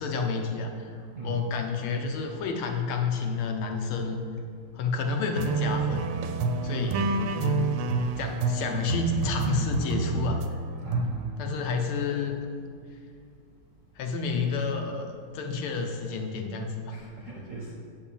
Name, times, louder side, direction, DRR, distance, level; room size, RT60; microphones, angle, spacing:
voice 1, 0.0-4.2 4.7-6.1 6.6-7.0 8.2-10.4 11.4-12.4 14.0-17.0, left 4 dB, 80° left, 3 dB, 1.7 m, -30 dB
voice 2, 1.2-1.5 6.7-7.3 10.8-11.5 16.9-17.7, right 3 dB, 55° right, -3 dB, 0.8 m, -37 dB
sound 1, 5.3-10.5 10.9-11.3, right 3 dB, 85° right, 1.5 m, -28 dB
7.4 x 4.8 x 7.0 m, 2.2 s
omnidirectional pair, 2.4 m